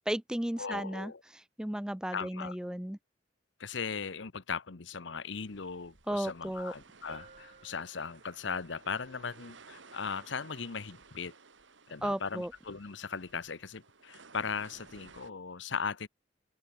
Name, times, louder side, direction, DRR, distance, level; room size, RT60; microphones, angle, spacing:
voice 1, 0.1-3.0 6.1-6.7 12.0-12.5, right 1 dB, 5° right, 0.4 m, -35 dB
voice 2, 0.6-1.2 2.1-2.5 3.6-11.3 11.9-16.1, left 5 dB, 65° left, 0.9 m, -38 dB
sound 1, 5.3-15.3, right 4 dB, 70° right, 2.0 m, -57 dB
Bell, 7.1-8.7, right 3 dB, 40° right, 6.3 m, -56 dB
open air
head